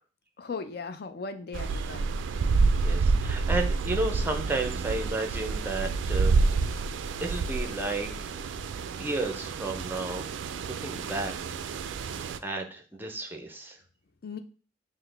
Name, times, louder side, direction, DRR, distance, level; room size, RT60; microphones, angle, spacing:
voice 1, 0.4-2.1 14.2-14.4, left 4 dB, 55° left, 9 dB, 0.4 m, -37 dB
sound 1, 1.5-12.4, right 4 dB, 75° right, 0.3 m, -28 dB
voice 2, 2.8-6.9 7.2-8.4 9.0-10.2 10.7-11.3 12.4-13.8, right 2 dB, 10° right, 4 dB, 0.5 m, -33 dB
5.8 x 2.1 x 3.3 m, 0.38 s
head